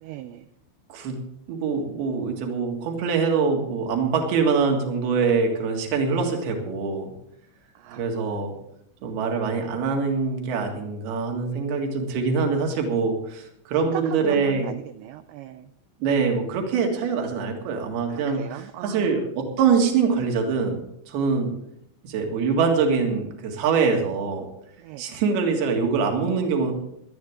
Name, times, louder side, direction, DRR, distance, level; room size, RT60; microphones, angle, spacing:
voice 1, 0.0-0.5 7.8-8.2 9.0-9.3 13.9-15.7 18.1-19.3 24.8-25.1, right 13 dB, 90° right, 10 dB, 2.5 m, -38 dB
voice 2, 1.5-7.1 7.9-8.5 9.0-14.7 16.0-21.5 22.0-24.5 25.0-26.7, right 5 dB, 60° right, 2 dB, 3.5 m, -24 dB
18.0 x 12.0 x 3.6 m, 0.76 s
omnidirectional pair, 5.8 m